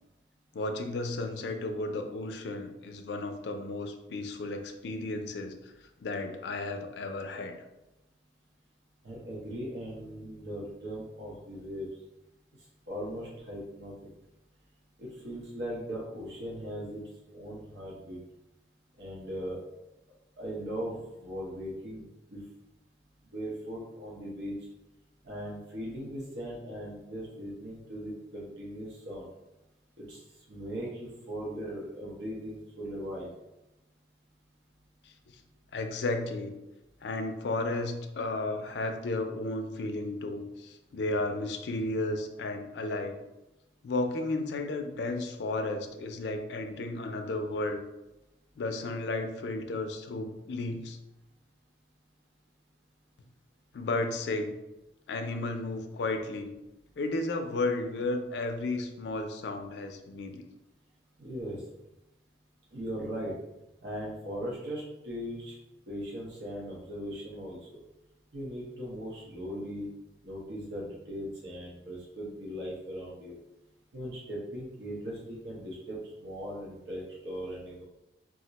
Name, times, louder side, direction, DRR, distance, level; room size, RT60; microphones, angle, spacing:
voice 1, 0.5-5.6 6.0-7.5 35.0-35.1 35.7-36.5 37.0-43.2 43.8-47.8 48.6-51.0 53.7-54.5 55.1-56.5 57.0-60.4, left 2 dB, 70° left, 5 dB, 0.4 m, -33 dB
voice 2, 9.0-11.9 12.9-13.9 15.0-17.0 17.3-18.2 19.0-19.6 20.4-22.1 22.3-22.4 23.2-24.5 25.2-29.3 30.0-30.2 30.5-33.3 61.2-61.6 62.7-63.3 63.8-65.6 65.9-67.8 68.3-69.9 70.2-73.4 73.9-77.8, equal, 70° right, -4 dB, 0.7 m, -39 dB
2.4 x 2.1 x 3.9 m, 0.96 s
head